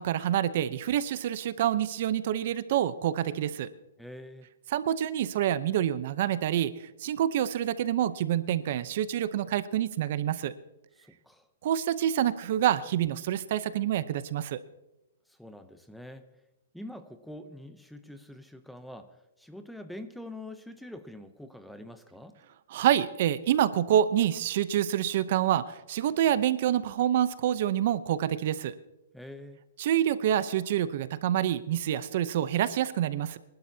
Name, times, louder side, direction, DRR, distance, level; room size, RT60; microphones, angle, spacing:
voice 1, 0.0-3.7 4.7-10.5 11.6-14.6 22.7-28.7 29.8-33.4, right 11 dB, 50° right, 14 dB, 0.7 m, -27 dB
voice 2, 4.0-4.5 11.0-11.5 15.3-16.3 16.7-22.4 29.1-29.6, left 1 dB, ahead, 10 dB, 0.7 m, -45 dB
25.0 x 12.0 x 2.8 m, 0.92 s
hypercardioid pair, 155°, 0 cm